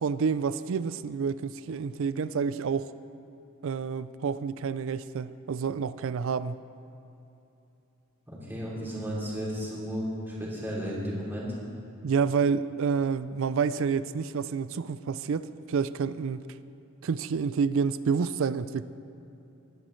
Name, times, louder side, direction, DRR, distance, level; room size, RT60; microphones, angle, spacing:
voice 1, 0.0-2.9 3.6-6.6 12.0-16.5 17.0-18.8, right 5 dB, 60° right, 15 dB, 0.4 m, -29 dB
voice 2, 8.3-11.5, equal, 10° right, -6 dB, 2.9 m, -34 dB
21.0 x 10.0 x 3.2 m, 3.0 s
head